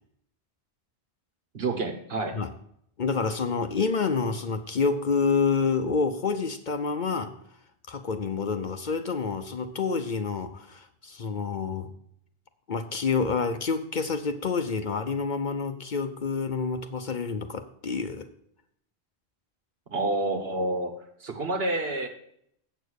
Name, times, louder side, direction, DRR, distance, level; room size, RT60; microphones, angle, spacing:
voice 1, 1.5-2.4 19.9-20.9 21.2-22.1, right 2 dB, 65° right, 5 dB, 1.5 m, -28 dB
voice 2, 3.0-7.3 7.9-11.9 12.7-18.3, left 5 dB, 50° left, 8 dB, 0.7 m, -28 dB
8.1 x 6.8 x 6.3 m, 0.70 s
omnidirectional pair, 1.1 m